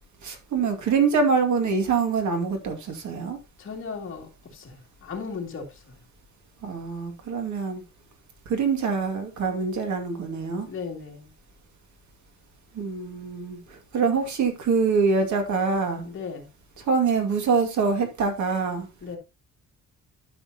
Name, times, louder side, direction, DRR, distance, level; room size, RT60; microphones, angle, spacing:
voice 1, 0.2-3.4 6.6-7.8 8.5-10.7 12.7-16.1 16.8-18.9, right 5 dB, 75° right, 2.2 m, -25 dB
voice 2, 3.6-6.0 10.7-11.3 16.0-16.5 19.0-19.2, left 5 dB, 45° left, 2.5 m, -36 dB
12.0 x 6.6 x 2.8 m
wide cardioid pair, 180°, 29 cm